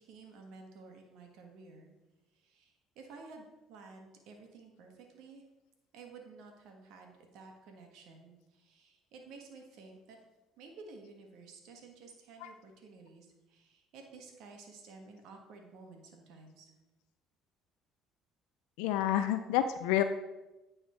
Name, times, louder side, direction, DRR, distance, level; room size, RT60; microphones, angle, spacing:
voice 1, 0.0-1.9 2.4-5.4 5.9-10.2 10.6-16.7, right 4 dB, 75° right, 3 dB, 1.5 m, -53 dB
voice 2, 18.8-20.0, left 12 dB, 85° left, 9 dB, 0.3 m, -29 dB
9.3 x 4.3 x 4.4 m, 1.1 s
supercardioid pair, 80°, 0 cm